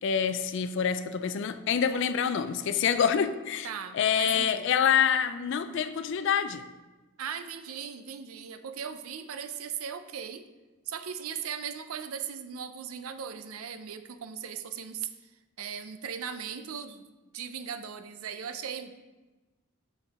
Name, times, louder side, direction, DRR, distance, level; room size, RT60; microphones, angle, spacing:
voice 1, 0.0-3.7 3.9-6.6, left 7 dB, 60° left, 0.3 m, -26 dB
voice 2, 3.6-4.7 7.2-10.4 10.9-15.3 15.6-17.0 17.3-18.9, right 7 dB, 90° right, 0.5 m, -38 dB
5.6 x 5.3 x 4.1 m
head